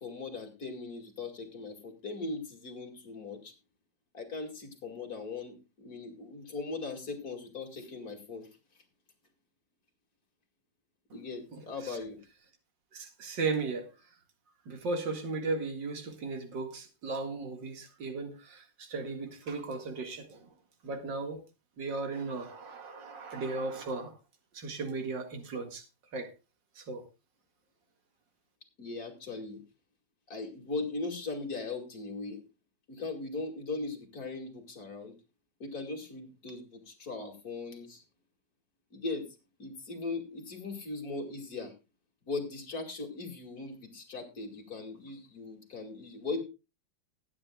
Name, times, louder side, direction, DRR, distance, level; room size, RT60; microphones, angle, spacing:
voice 1, 0.0-3.5 4.1-8.5 11.1-12.2 28.8-29.6 30.3-32.4 32.9-35.1 35.6-38.0 38.9-39.3 39.6-41.7 42.3-46.4, left 3 dB, 50° left, 3.0 m, -39 dB
voice 2, 12.9-13.9 14.7-20.5 20.8-21.4 21.8-24.1 24.5-25.8 26.1-26.3 26.8-27.0, right 3 dB, 75° right, 2.6 m, -36 dB
19.5 x 9.7 x 2.3 m
omnidirectional pair, 2.0 m